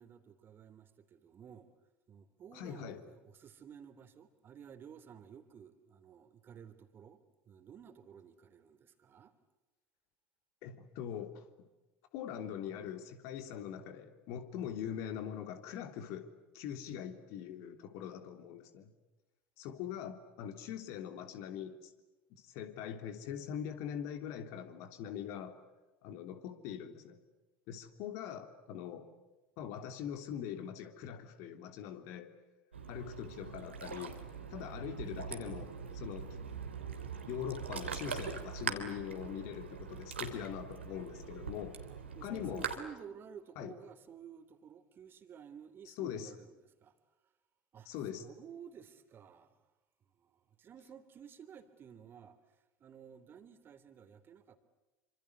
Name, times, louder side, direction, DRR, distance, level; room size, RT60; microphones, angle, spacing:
voice 1, 0.0-1.7 2.1-7.2 7.4-9.3 41.9-46.9 47.7-49.6 50.1-52.4 52.8-54.6, right 8 dB, 35° right, 3.3 m, -53 dB
voice 2, 2.5-3.0 10.6-11.4 12.1-16.3 16.5-18.9 19.6-21.9 22.3-25.6 26.0-27.2 27.7-29.1 29.6-32.3 32.9-34.2 34.5-36.3 37.3-41.8 42.2-42.7 43.5-43.8 45.9-46.3 47.8-48.2, left 9 dB, 55° left, 3.3 m, -42 dB
Ocean, 32.7-42.8, right 6 dB, 85° right, 3.1 m, -42 dB
27.5 x 26.0 x 8.1 m
figure-of-eight pair, 70°, 6 cm